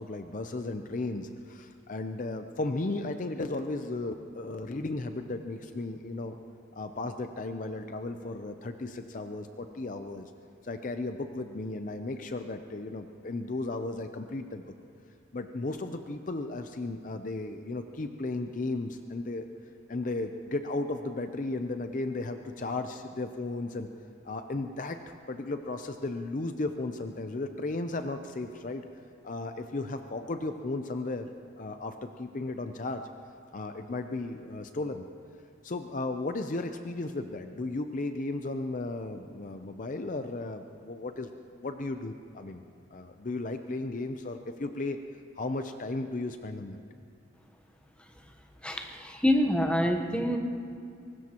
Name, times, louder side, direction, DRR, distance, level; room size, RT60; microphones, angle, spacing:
voice 1, 0.0-6.4 6.7-10.3 10.6-14.6 15.3-19.5 19.9-23.9 24.2-25.0 25.3-28.8 29.2-33.1 33.5-35.1 35.6-41.3 41.6-42.6 42.9-45.0 45.4-46.8, left 2 dB, 40° left, 7 dB, 0.5 m, -35 dB
voice 2, 48.6-50.4, left 1 dB, 5° left, 3 dB, 1.0 m, -26 dB
23.5 x 19.5 x 3.0 m, 2.4 s
head